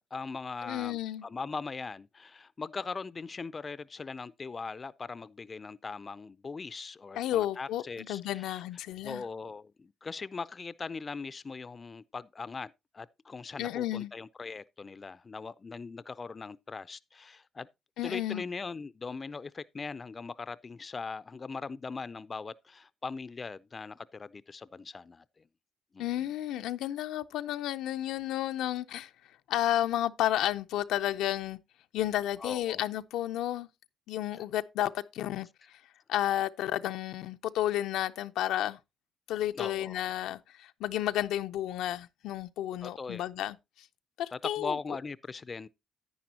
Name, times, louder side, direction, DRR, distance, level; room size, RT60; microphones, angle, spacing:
voice 1, 0.0-8.6 9.0-17.7 18.0-25.2 25.9-26.0 32.4-32.8 39.6-40.0 42.8-43.3 44.3-45.7, left 4 dB, 35° left, 0.4 m, -40 dB
voice 2, 0.6-1.2 7.2-9.2 13.6-14.1 18.0-18.4 26.0-29.1 29.5-31.6 31.9-33.7 34.1-35.8 36.1-38.8 39.3-43.6 44.2-44.8, left 13 dB, 90° left, 0.5 m, -32 dB
10.5 x 9.4 x 2.8 m
cardioid pair, 90°, 0 cm